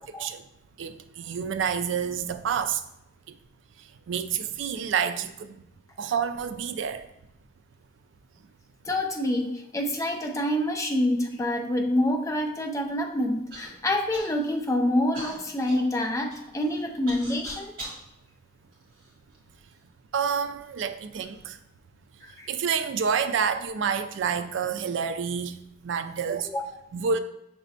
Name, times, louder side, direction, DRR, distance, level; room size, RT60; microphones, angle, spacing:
voice 1, 0.8-2.8 3.3-3.4 4.1-5.6 6.0-7.0 20.1-21.6 22.5-25.5 25.8-26.5 26.9-27.2, right 6 dB, 75° right, 10 dB, 0.4 m, -28 dB
voice 2, 8.9-17.8 22.2-22.5 26.4-26.7, left 1 dB, 15° left, 3 dB, 0.4 m, -27 dB
Human voice / Cough, 13.5-13.7 14.1-14.6 15.1-18.0 18.7-19.6 20.3-20.4 21.1-21.5, right 1 dB, 50° right, 1.8 m, -42 dB
5.9 x 3.2 x 2.7 m, 0.82 s
head